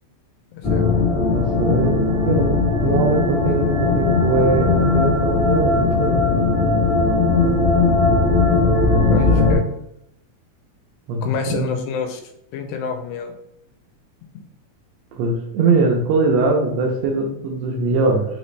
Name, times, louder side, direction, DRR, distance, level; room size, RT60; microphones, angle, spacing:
voice 1, 0.5-1.1 9.1-9.6 11.2-12.2 12.5-13.3, left 6 dB, 85° left, 6 dB, 2.1 m, -27 dB
sound 1, 0.6-9.6, left 3 dB, 65° left, 0.3 m, -18 dB
voice 2, 1.3-6.3 8.9-9.6 11.1-11.7 15.2-18.3, right 3 dB, 75° right, 1 dB, 1.7 m, -21 dB
4.9 x 2.9 x 3.2 m, 0.78 s
omnidirectional pair, 3.4 m